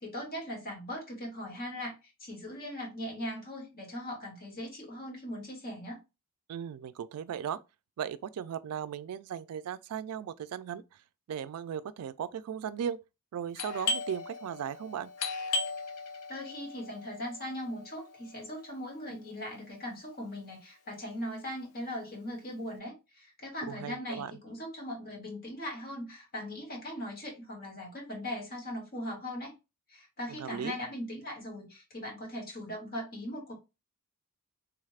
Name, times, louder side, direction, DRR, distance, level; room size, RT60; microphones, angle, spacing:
voice 1, 0.0-1.9 2.2-6.0 16.3-29.5 29.9-33.6, left 1 dB, 45° left, 1.6 m, -39 dB
voice 2, 6.5-7.6 8.0-10.8 11.3-13.0 13.3-15.1 23.7-24.3 30.4-30.7, right 8 dB, 70° right, 0.3 m, -37 dB
Doorbell, 13.6-19.0, left 3 dB, 90° left, 0.7 m, -37 dB
3.4 x 2.4 x 3.2 m
head